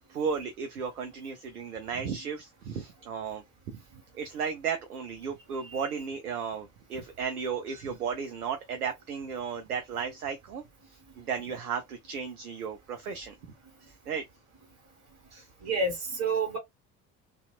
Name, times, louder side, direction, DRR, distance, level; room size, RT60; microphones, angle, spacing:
voice 1, 0.1-3.8 4.1-10.6 11.2-13.3 13.8-14.2 15.3-15.5, right 6 dB, 80° right, 0.6 m, -34 dB
voice 2, 5.6-5.9 15.6-16.6, right 3 dB, 35° right, 1.6 m, -29 dB
2.8 x 2.4 x 2.3 m
figure-of-eight pair, 60°, 44 cm